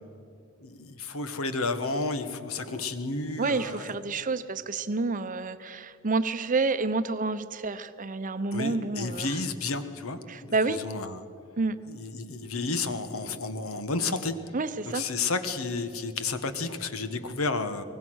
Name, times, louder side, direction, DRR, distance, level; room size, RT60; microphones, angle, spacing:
voice 1, 0.6-3.9 8.5-11.2 11.9-14.3 14.8-17.8, left 3 dB, 70° left, 10 dB, 1.4 m, -31 dB
voice 2, 3.4-9.4 10.3-10.8 11.6-11.8 14.5-15.0, right 3 dB, 35° right, 12 dB, 0.8 m, -29 dB
24.0 x 19.0 x 6.4 m, 2.5 s
head